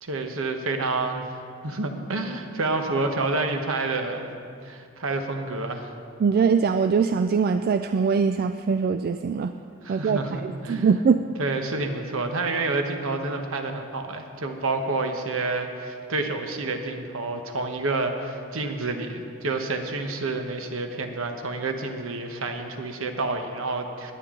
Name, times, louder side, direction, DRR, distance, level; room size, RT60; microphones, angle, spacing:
voice 1, 0.0-4.3 4.6-5.9 9.8-10.8 11.4-24.1, right 3 dB, 65° right, 5 dB, 1.1 m, -29 dB
voice 2, 6.2-9.5 9.9-11.2, right 5 dB, 45° right, 9 dB, 0.3 m, -22 dB
19.5 x 9.1 x 3.8 m, 2.4 s
head